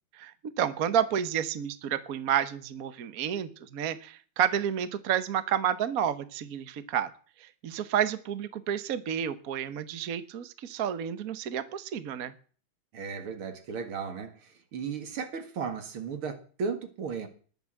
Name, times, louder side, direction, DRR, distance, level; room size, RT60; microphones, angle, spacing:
voice 1, 0.1-7.1 7.4-12.3, right 9 dB, 50° right, 13 dB, 1.3 m, -30 dB
voice 2, 12.9-17.3, right 5 dB, 80° right, 8 dB, 2.8 m, -35 dB
20.0 x 7.1 x 7.6 m, 0.42 s
omnidirectional pair, 2.3 m